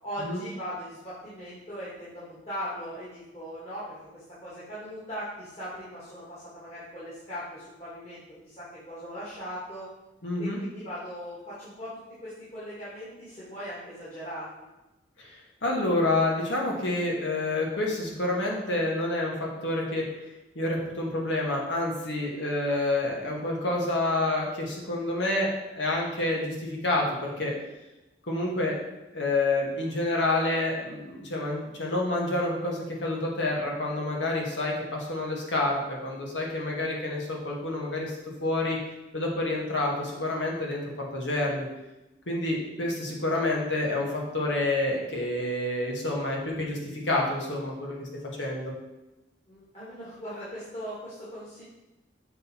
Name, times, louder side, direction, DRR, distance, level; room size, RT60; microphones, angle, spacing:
voice 1, 0.0-3.8 4.1-9.9 10.4-11.9 12.2-14.5 49.5-51.6, equal, 35° left, -10 dB, 1.8 m, -39 dB
voice 2, 10.2-10.6 15.2-15.4 15.6-20.0 20.5-27.5 28.3-28.8 29.1-38.8 39.1-41.7 42.3-48.1 48.4-48.7, left 2 dB, 70° left, -2 dB, 1.4 m, -28 dB
6.5 x 4.1 x 4.3 m, 1.0 s
head